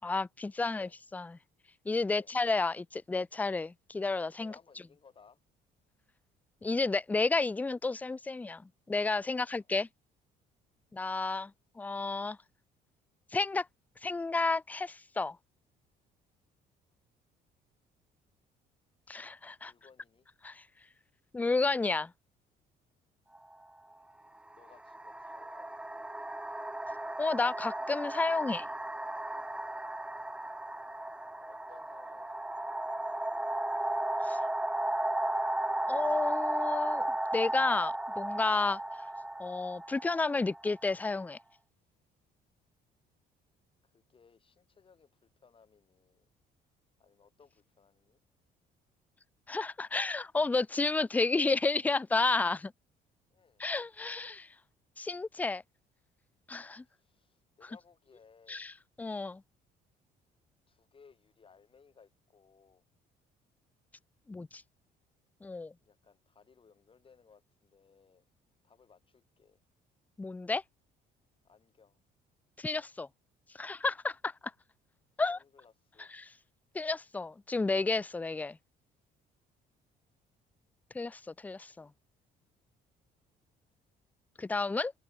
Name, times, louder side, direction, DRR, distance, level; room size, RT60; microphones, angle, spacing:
voice 1, 0.0-1.3 1.9-4.5 6.6-8.6 8.9-9.9 10.9-11.5 11.8-12.4 13.3-13.7 14.0-15.4 19.1-19.7 20.4-20.6 21.3-22.1 27.2-28.7 34.2-34.4 35.9-37.0 37.3-38.8 39.4-41.4 49.5-52.7 53.6-54.5 55.0-55.6 56.5-56.8 58.5-58.7 59.0-59.4 64.3-64.6 65.4-65.7 70.2-70.6 72.6-73.1 73.6-74.3 75.2-75.4 76.1-76.3 76.7-78.6 80.9-81.9 84.4-84.9, left 3 dB, 10° left, 0.4 m, -31 dB
voice 2, 4.4-5.4 9.3-9.7 19.6-20.3 24.5-26.0 31.4-32.6 33.1-33.6 43.8-46.3 47.0-48.2 53.3-53.6 56.9-58.7 60.7-62.8 65.8-68.2 68.6-69.6 71.4-72.0 75.3-76.1, left 5 dB, 30° left, 5.3 m, -62 dB
sound 1, 23.3-23.5 24.5-41.1, right 1 dB, 5° right, 0.7 m, -35 dB
cardioid pair, 110°, 17 cm